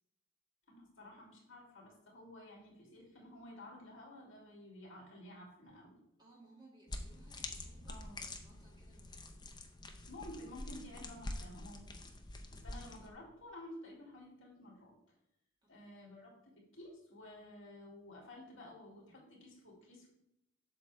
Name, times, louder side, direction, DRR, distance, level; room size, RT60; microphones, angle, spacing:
voice 1, 0.7-6.0 7.9-8.2 10.1-12.0 12.5-15.0 15.7-20.1, left 1 dB, 65° left, -2 dB, 2.8 m, -52 dB
voice 2, 6.2-9.4 15.6-16.1 16.5-16.6, right 2 dB, 20° right, -3 dB, 2.0 m, -64 dB
sound 1, 6.9-13.1, left 2 dB, 20° left, 0.6 m, -46 dB
7.9 x 6.4 x 3.3 m, 0.84 s
head